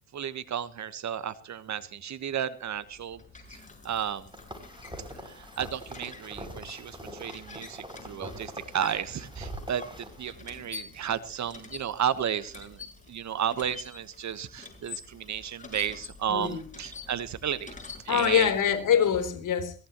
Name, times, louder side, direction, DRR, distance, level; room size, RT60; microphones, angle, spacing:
voice 1, 0.1-3.2 3.8-4.3 5.2-17.7 18.0-18.5, right 9 dB, 45° right, 14 dB, 1.3 m, -33 dB
sound 1, 2.7-18.9, left 4 dB, 20° left, 6.5 m, -47 dB
sound 2, 4.3-10.3, right 1 dB, 10° right, 6.6 m, -43 dB
voice 2, 16.3-16.6 18.1-19.7, left 8 dB, 50° left, 7 dB, 3.7 m, -24 dB
21.5 x 17.5 x 3.1 m, 0.37 s
hypercardioid pair, 55°, 39 cm